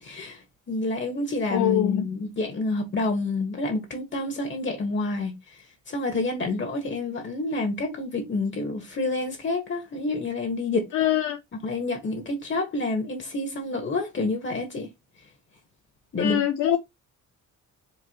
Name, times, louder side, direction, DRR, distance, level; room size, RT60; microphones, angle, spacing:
voice 1, 0.0-5.3 5.9-10.9 11.6-14.9 16.1-16.4, left 2 dB, 40° left, 1.5 m, -28 dB
voice 2, 1.5-2.0 10.9-11.4 16.2-16.8, left 11 dB, 80° left, 0.7 m, -23 dB
4.7 x 3.0 x 2.9 m
cardioid pair, 90°, 30 cm